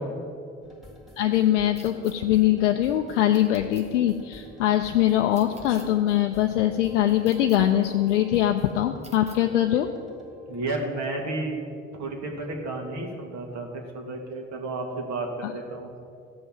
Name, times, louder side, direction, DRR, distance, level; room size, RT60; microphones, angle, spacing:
sound 1, 0.6-11.0, left 1 dB, ahead, 2.2 m, -50 dB
voice 1, 1.2-9.9 15.4-15.5, left 12 dB, 80° left, 4 dB, 0.6 m, -22 dB
sound 2, 1.8-2.1 3.3-3.8 5.3-5.9 7.2-7.6 9.0-9.4, right 2 dB, 20° right, 1.5 m, -50 dB
voice 2, 10.5-11.6 11.9-15.9, right 2 dB, 50° right, 1 dB, 2.2 m, -32 dB
14.5 x 5.6 x 7.3 m, 2.4 s
figure-of-eight pair, 55°, 36 cm